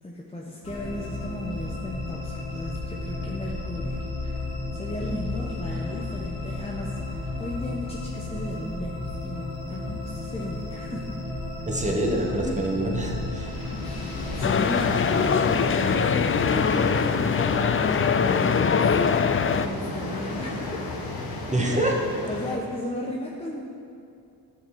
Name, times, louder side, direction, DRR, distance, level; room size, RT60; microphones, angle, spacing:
voice 1, 0.0-4.4 4.7-11.2 12.0-12.1 12.4-12.6 13.7-19.2 19.5-20.8 21.6-23.6, left 1 dB, 15° left, -3 dB, 1.2 m, -35 dB
sound 1, 0.6-14.4, left 2 dB, 85° left, 2.1 m, -33 dB
voice 2, 11.7-13.5 21.5-21.9, right 1 dB, 15° right, -1 dB, 2.1 m, -26 dB
sound 2, 13.3-22.6, left 2 dB, 50° left, 1.5 m, -33 dB
sound 3, 14.4-19.7, left 6 dB, 30° left, 0.5 m, -22 dB
11.5 x 6.6 x 4.8 m, 2.5 s
hypercardioid pair, 45°, 46 cm